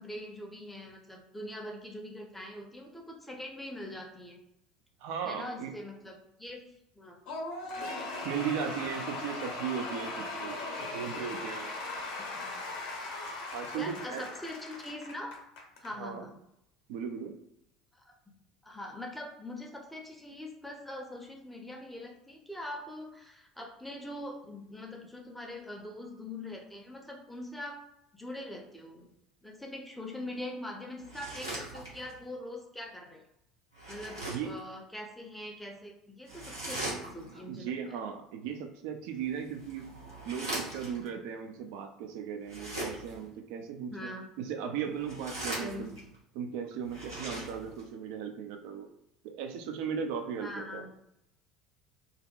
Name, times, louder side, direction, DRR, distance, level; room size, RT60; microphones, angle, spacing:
voice 1, 0.0-4.4 5.2-7.2 12.2-12.5 13.7-15.3 15.8-16.3 18.0-18.1 18.6-27.8 28.1-29.1 29.4-33.2 33.9-38.0 43.9-44.3 45.6-45.9 50.4-50.9, left 1 dB, 5° left, 0 dB, 0.6 m, -43 dB
voice 2, 5.0-5.7 8.2-11.7 13.5-14.3 16.0-16.3 16.9-17.4 34.2-34.5 37.5-39.9 40.2-45.9 46.3-48.9 49.2-50.8, right 7 dB, 55° right, 5 dB, 0.4 m, -37 dB
Cheering / Applause / Crowd, 7.3-15.9, left 2 dB, 55° left, 0.7 m, -39 dB
sound 1, 31.0-32.2 33.7-34.6 36.3-37.4 39.2-41.1 42.4-43.3 44.9-46.1 46.8-47.9, right 1 dB, 85° right, 0.8 m, -40 dB
2.6 x 2.0 x 2.3 m, 0.81 s
figure-of-eight pair, 65°, 2 cm